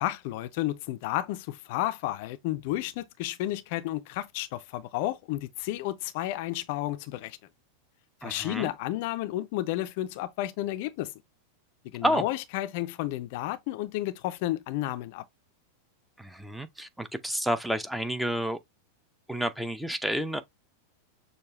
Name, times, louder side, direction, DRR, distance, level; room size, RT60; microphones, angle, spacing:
voice 1, 0.0-7.4 8.2-11.1 11.8-15.2, left 15 dB, 50° left, 0.4 m, -32 dB
voice 2, 8.2-8.7 12.0-12.2 16.2-18.6 19.3-20.4, equal, ahead, 0.5 m, -30 dB
6.4 x 2.3 x 3.0 m
figure-of-eight pair, 90°, 0 cm